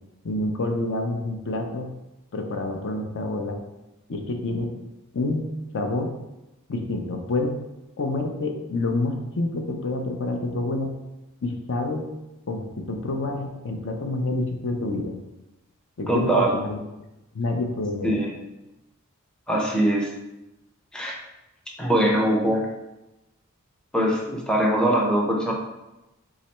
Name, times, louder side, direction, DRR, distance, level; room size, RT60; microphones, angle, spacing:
voice 1, 0.2-1.9 2.3-3.6 4.1-4.7 5.1-5.5 5.7-6.1 6.7-7.6 8.0-10.9 11.4-12.1 12.5-15.1 16.0-16.8 17.3-18.1, left 2 dB, 60° left, 3 dB, 0.6 m, -27 dB
voice 2, 16.1-16.6 18.0-18.4 19.5-20.1 20.9-21.2 21.8-22.7 23.9-25.5, right 1 dB, 5° left, -2 dB, 0.5 m, -22 dB
3.7 x 3.2 x 4.3 m, 0.96 s
head